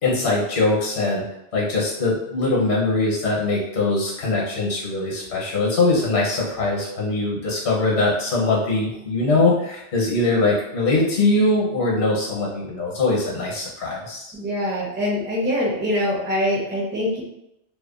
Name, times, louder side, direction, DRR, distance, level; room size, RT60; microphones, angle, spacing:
voice 1, 0.0-1.2 1.5-14.3, left 2 dB, 65° left, -3 dB, 1.1 m, -22 dB
voice 2, 14.3-17.2, left 1 dB, 15° right, -5 dB, 0.4 m, -24 dB
2.7 x 2.1 x 2.4 m, 0.82 s
omnidirectional pair, 1.2 m